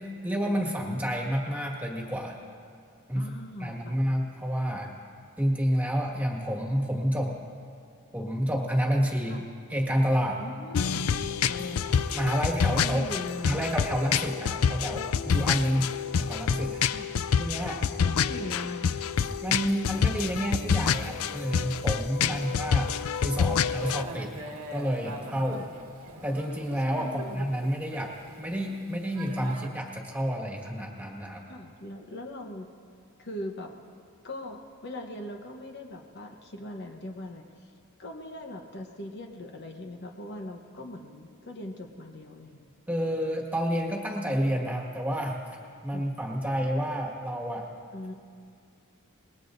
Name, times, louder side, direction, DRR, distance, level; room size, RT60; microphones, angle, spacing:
voice 1, 0.0-2.4 3.1-3.3 3.6-4.9 5.4-7.4 8.1-9.4 9.7-10.4 12.1-13.1 13.4-15.9 16.2-17.0 17.4-17.9 19.4-22.9 23.2-24.3 24.7-25.6 26.2-31.4 42.9-45.4 45.8-47.7, equal, 5° right, -1 dB, 1.8 m, -29 dB
voice 2, 3.1-4.0 9.3-9.4 10.4-11.1 11.5-12.0 12.7-13.6 15.7-15.9 16.9-17.1 18.0-18.8 22.2-22.4 25.5-25.7 27.0-27.5 31.5-32.7 33.2-33.7 34.2-37.7 38.0-42.7 45.9-46.1 47.9-48.1, left 1 dB, 50° left, 2 dB, 1.0 m, -40 dB
sound 1, 10.7-24.0, left 7 dB, 75° left, 0.4 m, -27 dB
Thunder / Rain, 20.8-29.7, right 1 dB, 80° right, 1.5 m, -45 dB
26.0 x 20.5 x 2.6 m, 2.3 s
head